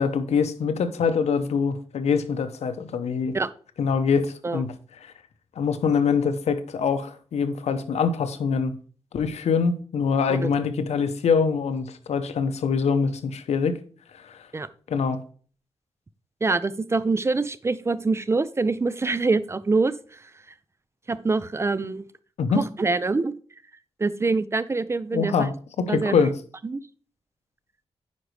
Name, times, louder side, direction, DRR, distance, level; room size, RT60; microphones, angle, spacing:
voice 1, 0.0-3.4 3.8-4.7 5.0-5.1 5.6-8.8 9.1-13.8 14.1-14.5 14.9-15.2 22.4-22.6 25.1-26.3, left 5 dB, 85° left, 0.8 m, -24 dB
voice 2, 16.4-19.9 21.1-22.0 22.6-23.3 24.0-25.5 25.9-26.2 26.6-26.8, right 3 dB, 25° right, 0.4 m, -25 dB
9.4 x 5.1 x 3.2 m
wide cardioid pair, 115°, 11 cm